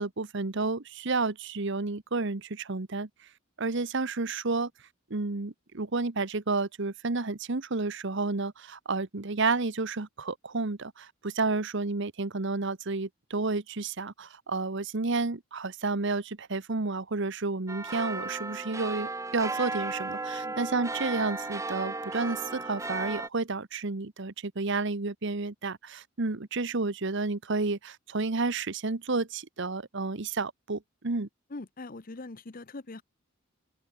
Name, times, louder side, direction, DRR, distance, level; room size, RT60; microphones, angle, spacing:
voice 1, 0.0-3.1 3.6-4.7 5.1-31.3, right 3 dB, 60° right, 1.1 m, -31 dB
sound 1, 17.7-23.3, right 3 dB, 15° right, 0.9 m, -35 dB
voice 2, 31.5-33.0, left 2 dB, 40° left, 0.9 m, -42 dB
open air
head